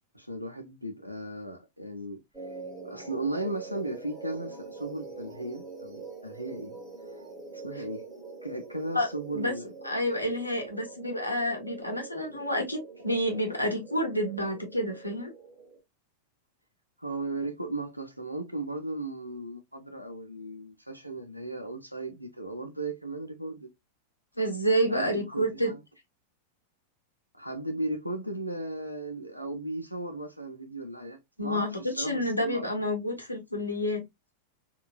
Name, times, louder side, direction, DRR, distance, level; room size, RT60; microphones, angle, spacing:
voice 1, 0.1-2.2 2.8-6.7 7.5-8.1 8.4-9.7 12.2-12.4 17.0-23.7 24.9-25.8 27.3-32.7, right 2 dB, 90° right, 0.7 m, -36 dB
sound 1, 2.3-15.8, right 4 dB, 20° right, 2.0 m, -44 dB
voice 2, 9.8-15.3 24.4-25.7 31.4-34.0, equal, 85° left, 1.0 m, -29 dB
3.7 x 2.5 x 2.2 m
figure-of-eight pair, 90°, 0 cm